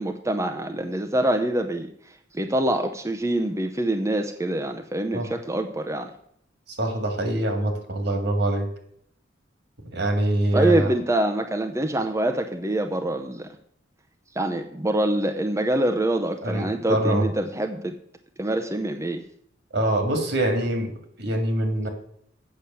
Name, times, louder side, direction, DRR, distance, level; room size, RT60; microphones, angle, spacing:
voice 1, 0.0-1.9 2.3-6.1 10.5-13.5 14.3-17.9 18.4-19.2, right 1 dB, 15° right, 5 dB, 0.6 m, -25 dB
voice 2, 6.8-8.7 9.9-10.9 16.4-17.2 19.7-20.9 21.2-21.9, right 1 dB, 65° right, 6 dB, 2.1 m, -24 dB
8.5 x 6.1 x 6.8 m, 0.67 s
head